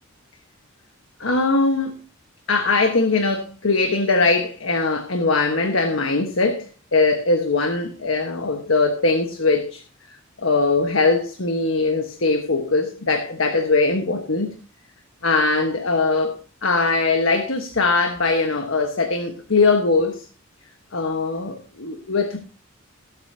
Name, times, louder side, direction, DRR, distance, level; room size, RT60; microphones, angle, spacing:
voice 1, 1.2-1.9 2.5-9.8 10.4-14.5 15.2-20.3 20.9-22.4, left 3 dB, 75° left, 1.3 m, -21 dB
19.5 x 8.1 x 2.8 m
head